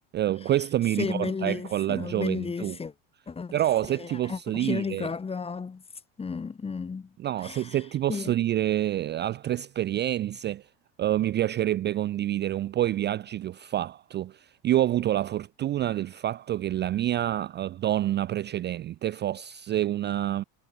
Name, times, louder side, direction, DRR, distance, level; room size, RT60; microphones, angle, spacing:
voice 1, 0.1-2.8 3.5-5.1 7.2-10.7 11.0-20.4, right 13 dB, 30° right, 0.4 m, -27 dB
voice 2, 1.0-2.9 3.3-3.6 3.9-5.8 6.2-7.1 7.4-7.8 8.1-8.3, left 5 dB, 15° left, 1.0 m, -33 dB
supercardioid pair, 115°, 36 cm